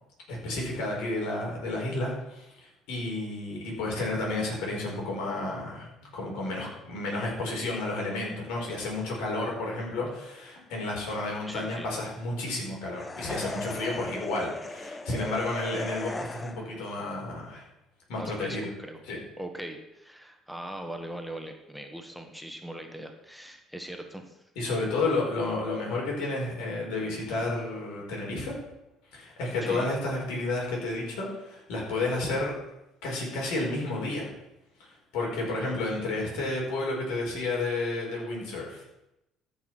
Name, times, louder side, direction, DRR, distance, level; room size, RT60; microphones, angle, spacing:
voice 1, 0.3-17.6 18.1-18.7 19.1-19.2 24.5-28.5 29.1-32.5 33.0-34.3 34.8-38.8, left 2 dB, 70° left, -2 dB, 4.6 m, -31 dB
voice 2, 11.5-11.9 18.2-19.0 19.4-24.4 29.6-29.9, right 1 dB, ahead, 5 dB, 1.8 m, -40 dB
sound 1, 13.0-16.8, left 2 dB, 20° left, 0.9 m, -37 dB
13.5 x 6.0 x 6.0 m, 0.90 s
hypercardioid pair, 55°, 0 cm